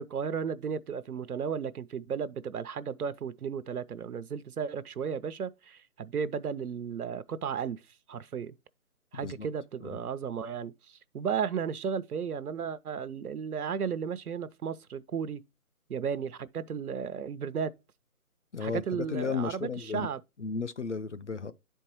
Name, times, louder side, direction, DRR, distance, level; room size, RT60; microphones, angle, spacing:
voice 1, 0.0-7.8 8.1-8.6 9.1-15.4 15.9-17.7 18.6-20.2, right 7 dB, 85° right, 0.7 m, -34 dB
voice 2, 18.5-20.1 20.4-21.5, left 5 dB, 55° left, 0.5 m, -34 dB
11.0 x 4.5 x 3.0 m
hypercardioid pair, 175°, 44 cm